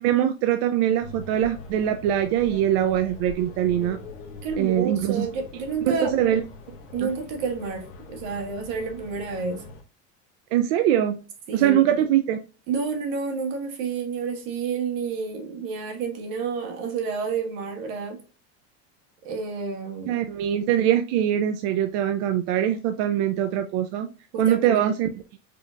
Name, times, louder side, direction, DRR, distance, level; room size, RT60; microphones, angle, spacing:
voice 1, 0.0-4.0 4.6-5.3 6.0-6.4 7.0-7.1 10.5-11.2 11.5-12.4 20.1-24.1 24.4-25.1, right 11 dB, 55° right, 0.4 m, -22 dB
sound 1, 1.0-9.8, left 4 dB, 35° left, 1.0 m, -42 dB
voice 2, 4.4-6.4 6.9-9.6 11.5-12.0 12.7-18.2 19.2-20.2 24.3-24.9, right 5 dB, 70° right, 1.6 m, -30 dB
5.0 x 2.8 x 2.3 m
supercardioid pair, 160°, 39 cm